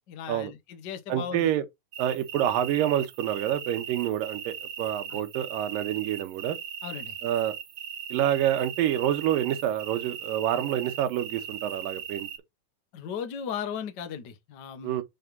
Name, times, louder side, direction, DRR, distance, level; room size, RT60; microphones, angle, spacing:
voice 1, 0.1-1.5 5.1-5.2 6.8-7.2 12.9-15.0, left 8 dB, 90° left, 0.9 m, -36 dB
voice 2, 1.1-1.7 2.0-6.6 7.2-7.5 8.1-12.3 14.8-15.0, right 11 dB, 85° right, 2.7 m, -27 dB
sound 1, 1.9-12.4, right 8 dB, 60° right, 1.3 m, -39 dB
6.4 x 3.5 x 5.2 m
omnidirectional pair, 3.8 m